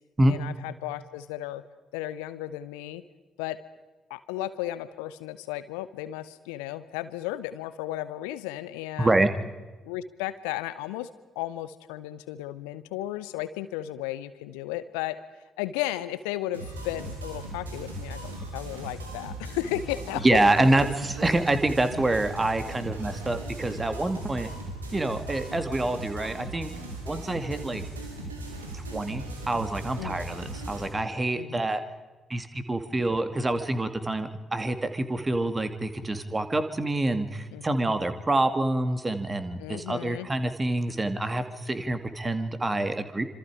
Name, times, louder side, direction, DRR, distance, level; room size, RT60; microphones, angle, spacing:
voice 1, 0.3-1.6 1.9-3.0 3.4-3.6 4.1-9.2 9.8-11.1 11.3-15.2 15.6-20.4 30.0-30.3 31.3-31.6 37.5-37.9 39.6-40.3, left 14 dB, 70° left, 14 dB, 0.9 m, -34 dB
voice 2, 9.0-9.3 20.2-24.5 24.9-26.7 27.1-27.8 28.7-31.8 32.3-43.2, right 2 dB, 25° right, 9 dB, 2.4 m, -26 dB
sound 1, 16.5-30.9, right 2 dB, 80° right, 2.9 m, -38 dB
26.5 x 26.5 x 4.9 m, 1.2 s
figure-of-eight pair, 40°, 0 cm